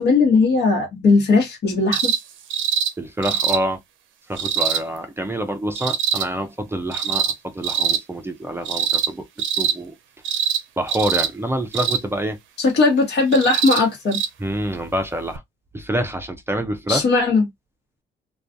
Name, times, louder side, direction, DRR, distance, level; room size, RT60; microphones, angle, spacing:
voice 1, 0.0-2.1 12.6-14.2 16.9-17.4, left 3 dB, 60° left, 1.1 m, -18 dB
sound 1, 1.9-2.2 2.5-2.9 3.2-3.6 4.4-4.8 5.8-6.2 6.9-7.3 7.6-8.0 8.7-9.1 9.4-9.8 10.2-10.6 10.9-11.3 11.7-12.0 13.3-13.8 14.1-14.3 15.4-15.5, right 8 dB, 80° right, 0.5 m, -22 dB
voice 2, 3.0-3.8 4.3-9.3 9.6-9.9 10.8-12.4 14.4-15.4 15.7-17.1, right 1 dB, 10° right, 0.4 m, -26 dB
2.4 x 2.3 x 2.5 m
cardioid pair, 90°, 20 cm